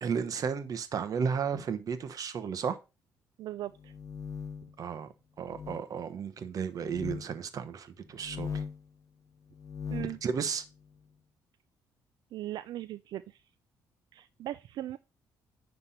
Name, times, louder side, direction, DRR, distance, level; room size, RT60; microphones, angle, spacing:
voice 1, 0.0-2.8 4.8-5.1 5.4-8.6 10.0-10.6, right 6 dB, 50° right, 1.1 m, -33 dB
voice 2, 3.4-3.9 9.9-10.2 12.3-13.4 14.1-15.0, right 13 dB, 75° right, 0.4 m, -39 dB
sound 1, 3.8-4.7 5.5-5.8 6.8-7.3 8.1-8.9 9.5-10.2, left 6 dB, 45° left, 0.7 m, -39 dB
10.0 x 3.5 x 5.6 m
cardioid pair, 100°, 7 cm